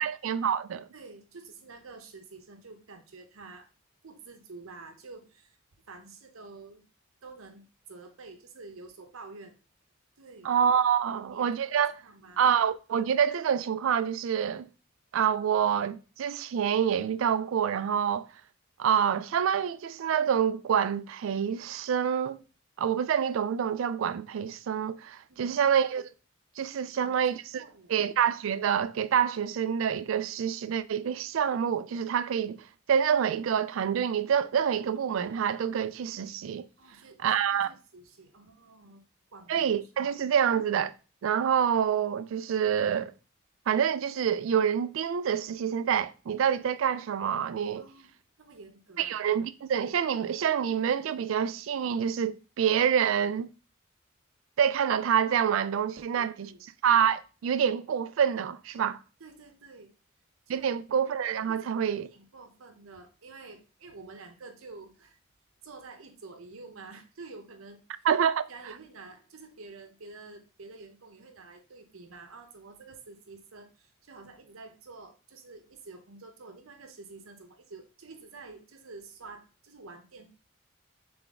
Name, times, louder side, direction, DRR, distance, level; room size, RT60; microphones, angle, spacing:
voice 1, 0.0-0.9 10.4-12.0 12.4-14.7 15.1-18.3 18.8-22.4 22.8-26.0 26.6-27.6 27.9-32.6 32.9-36.7 37.2-37.7 39.5-40.9 41.2-43.1 43.7-47.8 49.0-53.5 54.6-56.5 56.8-59.0 60.5-62.1 68.0-68.5, right 8 dB, 70° right, 0.3 m, -27 dB
voice 2, 0.9-3.7 4.0-5.6 5.9-6.8 7.2-9.6 10.2-10.5 11.1-12.4 25.3-25.5 26.8-27.2 27.6-28.0 36.8-37.2 37.5-39.0 39.3-39.7 47.7-49.1 56.0-56.6 59.2-59.9 60.5-60.7 61.5-65.2 65.6-67.8 68.5-80.3, right 3 dB, 90° right, 0.8 m, -49 dB
3.9 x 3.4 x 3.5 m
head